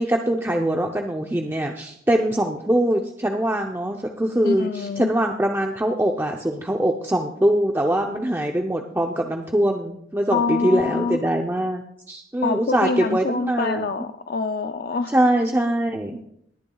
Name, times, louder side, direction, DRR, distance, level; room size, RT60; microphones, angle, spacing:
voice 1, 0.0-14.0 15.1-16.2, right 1 dB, 10° right, 2 dB, 0.6 m, -23 dB
voice 2, 4.4-5.1 10.3-11.2 12.4-15.1, left 4 dB, 50° left, 7 dB, 0.4 m, -25 dB
20.5 x 10.5 x 2.3 m, 0.70 s
head